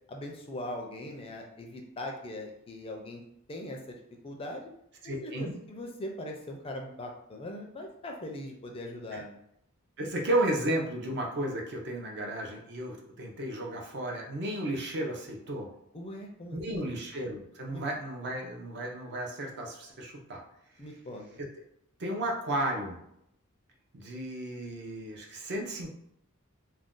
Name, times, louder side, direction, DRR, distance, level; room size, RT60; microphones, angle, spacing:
voice 1, 0.1-3.2 3.5-4.0 4.2-4.7 5.0-9.4 15.9-17.0 17.7-17.8 20.8-21.3, left 1 dB, 25° left, 1 dB, 0.4 m, -40 dB
voice 2, 5.0-5.6 9.1-9.2 10.0-15.7 16.5-20.4 22.0-23.0 23.9-25.9, right 1 dB, 50° right, 1 dB, 0.6 m, -33 dB
2.5 x 2.2 x 3.6 m, 0.76 s
head